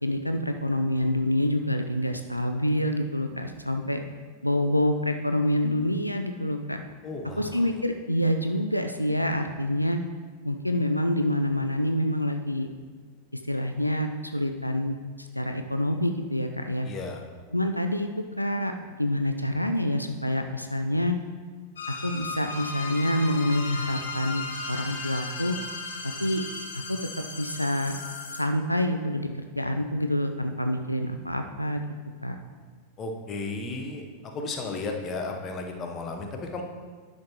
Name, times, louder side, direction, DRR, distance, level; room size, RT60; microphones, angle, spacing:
voice 1, 0.0-4.0 4.4-6.8 7.4-10.0 10.5-12.7 13.4-16.9 17.5-18.1 18.4-18.7 19.0-21.2 22.0-25.6 26.0-26.4 26.7-27.0 27.4-28.0 28.3-29.3 29.6-31.8 32.2-32.4, left 1 dB, 90° left, 6 dB, 0.4 m, -27 dB
voice 2, 7.0-7.5 16.8-17.2 33.0-34.0 34.3-36.6, left 3 dB, 25° left, 3 dB, 0.9 m, -34 dB
sound 1, 21.8-28.4, left 3 dB, 70° left, 1.1 m, -36 dB
10.5 x 6.4 x 3.0 m, 1.5 s
figure-of-eight pair, 90°, 0 cm